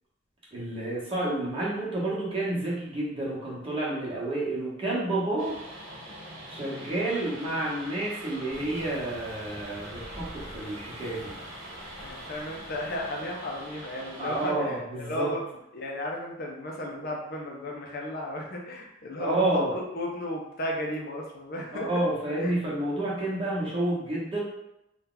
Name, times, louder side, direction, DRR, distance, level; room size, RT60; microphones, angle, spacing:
voice 1, 0.5-5.5 6.5-11.3 14.2-15.3 19.2-19.7 21.7-24.4, right 1 dB, 30° right, -6 dB, 1.0 m, -30 dB
Train Passing By, 5.4-14.5, right 1 dB, 75° right, 0.9 m, -43 dB
sound 1, 8.5-13.7, equal, 5° left, 1.2 m, -48 dB
voice 2, 12.0-15.4 15.7-21.9 22.4-22.5, left 1 dB, 50° left, -1 dB, 0.6 m, -34 dB
2.8 x 2.3 x 3.8 m, 0.84 s
head